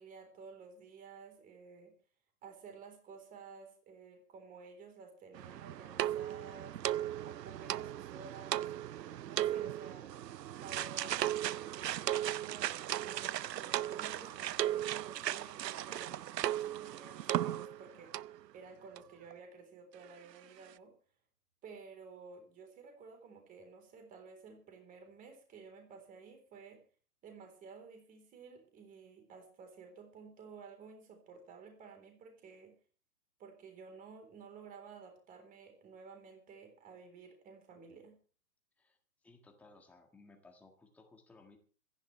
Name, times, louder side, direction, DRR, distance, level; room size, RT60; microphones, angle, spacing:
voice 1, 0.0-1.9 2.4-6.8 7.2-10.1 10.6-12.7 13.0-18.1 18.5-20.9 21.6-26.8 27.2-32.7 33.4-38.1, right 5 dB, 15° right, 5 dB, 3.8 m, -53 dB
sound 1, 5.3-17.9 18.1-18.4 19.0-19.1 19.3-19.4, right 12 dB, 80° right, 0.7 m, -36 dB
voice 2, 39.2-41.6, left 3 dB, 5° left, 2 dB, 1.6 m, -60 dB
27.0 x 10.5 x 3.3 m, 0.40 s
hypercardioid pair, 150°, 48 cm